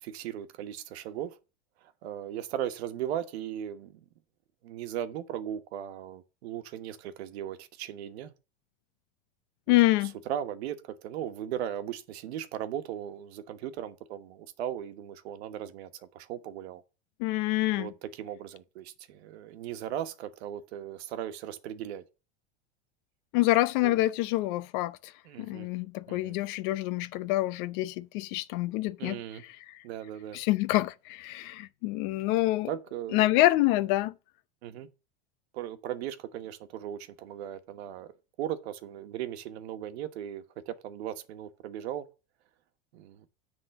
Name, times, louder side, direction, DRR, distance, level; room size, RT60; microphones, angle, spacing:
voice 1, 0.0-1.4 1.8-4.0 4.6-8.3 9.7-16.8 17.8-22.0 23.8-24.0 25.2-25.7 26.1-26.4 29.0-29.4 29.8-30.4 32.6-33.3 34.6-34.9 35.5-42.1 42.9-43.3, right 10 dB, 75° right, 1.3 m, -37 dB
voice 2, 9.7-10.1 17.2-17.9 23.3-25.0 25.4-29.2 30.3-32.7 33.1-34.1, left 17 dB, 50° left, 0.6 m, -26 dB
9.9 x 3.8 x 6.9 m
supercardioid pair, 155°, 32 cm